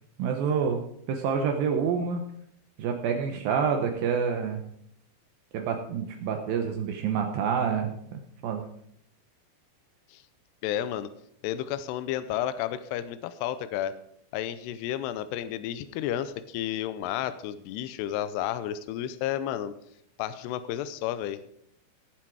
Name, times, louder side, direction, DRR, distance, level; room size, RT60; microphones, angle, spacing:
voice 1, 0.2-0.8 1.1-2.2 2.8-4.6 5.5-8.6, right 6 dB, 85° right, 3 dB, 2.0 m, -28 dB
voice 2, 10.6-11.1 11.4-13.9 14.3-19.8 20.2-21.4, left 11 dB, 85° left, 12 dB, 2.4 m, -32 dB
18.0 x 7.7 x 4.7 m, 0.70 s
omnidirectional pair, 5.6 m